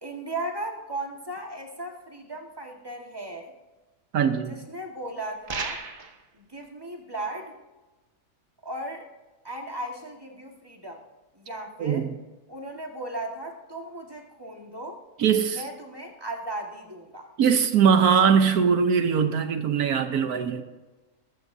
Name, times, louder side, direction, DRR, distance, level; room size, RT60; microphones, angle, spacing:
voice 1, 0.0-3.5 4.5-5.8 6.3-7.5 8.6-9.0 9.4-11.0 11.3-12.1 12.5-15.0 15.4-17.3, right 1 dB, 15° right, 1 dB, 1.7 m, -36 dB
voice 2, 4.1-4.6 11.8-12.1 15.2-15.6 17.4-20.6, right 7 dB, 80° right, 8 dB, 1.4 m, -21 dB
sound 1, 5.5-6.2, right 4 dB, 40° right, 1.1 m, -33 dB
21.5 x 13.5 x 2.7 m, 1.2 s
omnidirectional pair, 1.6 m